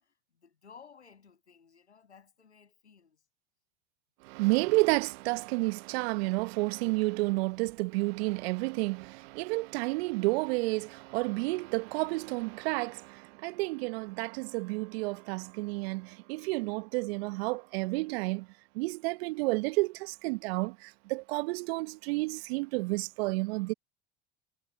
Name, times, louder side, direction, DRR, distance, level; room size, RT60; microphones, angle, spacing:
voice 1, 0.0-3.2, left 6 dB, 90° left, 7.7 m, -56 dB
voice 2, 4.2-18.5 18.7-23.7, right 25 dB, 65° right, 1.0 m, -31 dB
hypercardioid pair, 70°, 33 cm